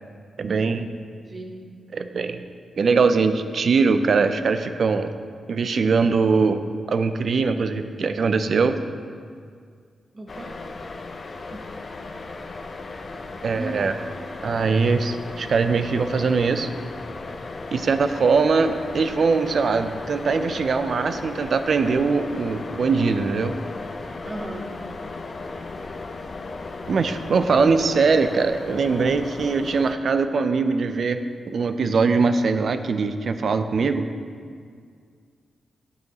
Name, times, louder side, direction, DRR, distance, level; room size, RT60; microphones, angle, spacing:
voice 1, 0.4-0.9 1.9-2.4 2.8-5.1 5.5-6.6 6.9-8.8 13.4-13.9 14.4-16.7 17.7-23.5 26.9-34.1, right 4 dB, 50° right, 9 dB, 0.4 m, -21 dB
voice 2, 10.1-10.5 11.5-11.6 13.6-13.8 24.3-24.7 27.5-27.6, right 1 dB, 25° right, 1 dB, 0.8 m, -34 dB
sound 1, 10.3-29.9, left 3 dB, 35° left, 0.4 m, -36 dB
9.5 x 7.6 x 2.8 m, 2.1 s
wide cardioid pair, 155°, 0 cm